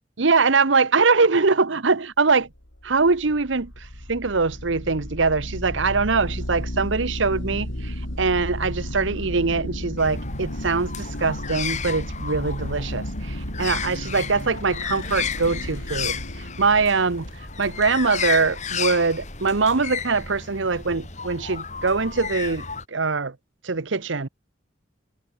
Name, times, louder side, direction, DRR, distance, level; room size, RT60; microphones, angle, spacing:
voice 1, 0.2-2.5 2.8-3.7 4.1-16.2 16.6-17.3 17.6-22.6 22.9-23.3 23.6-24.3, right 4 dB, 75° right, 1.0 m, -22 dB
sound 1, 2.5-19.9, left 1 dB, 85° left, 4.3 m, -34 dB
sound 2, 10.0-22.8, left 6 dB, 35° left, 3.9 m, -33 dB
head